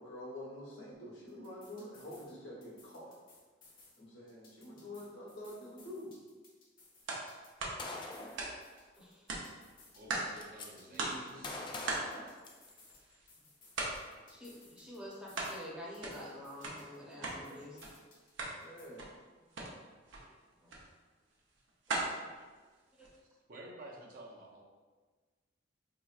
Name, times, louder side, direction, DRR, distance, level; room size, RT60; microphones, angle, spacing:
voice 1, 0.0-3.1 4.0-6.2 10.9-11.5 17.1-17.8 18.6-19.1, left 1 dB, 70° left, -5 dB, 1.1 m, -48 dB
sound 1, 1.3-2.3 2.6-4.0 4.3-7.6 7.9-10.3 10.6-13.0 13.3-15.6 15.9-18.3 18.6-18.9, left 3 dB, 50° left, 0.9 m, -62 dB
sound 2, 7.1-7.3 7.6-8.9 9.3-10.5 10.7-10.8 11.0-11.3 11.9-13.3 13.7-14.1 14.4-15.6 15.8-17.4 17.8-17.9 18.2-18.6 18.9-19.2 19.5-19.7 20.1-20.2 20.7-20.9 21.3-23.2, right 2 dB, 90° right, 0.7 m, -39 dB
Gunshot gunfire, 7.8-8.4 9.6-9.7 10.0-10.7 11.4-12.9, left 2 dB, 25° left, 0.3 m, -43 dB
voice 2, 9.0-9.4 14.3-17.8 20.6-20.7 21.9-22.3 23.0-23.1, left 1 dB, 5° right, -6 dB, 0.7 m, -48 dB
voice 3, 9.9-11.6 14.1-14.2 20.1-20.4 22.4-22.5 23.5-24.6, right 1 dB, 50° right, -2 dB, 0.6 m, -51 dB
4.1 x 2.9 x 2.4 m, 1.4 s
head